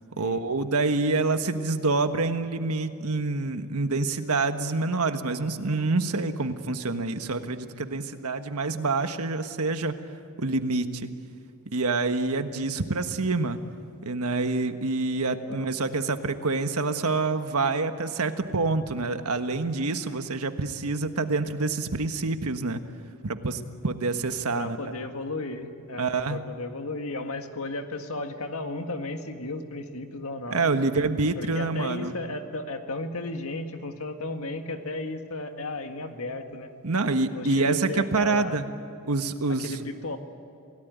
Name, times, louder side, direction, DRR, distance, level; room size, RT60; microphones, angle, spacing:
voice 1, 0.2-9.9 10.4-11.1 11.7-13.6 14.0-22.8 23.2-24.9 26.0-26.4 30.5-32.1 36.8-38.7 39.0-39.8, right 3 dB, 80° right, 8 dB, 1.4 m, -27 dB
voice 2, 24.5-30.7 31.4-36.7 37.3-38.6 39.6-40.2, left 2 dB, 70° left, 6 dB, 1.9 m, -34 dB
28.0 x 17.5 x 9.4 m, 2.6 s
head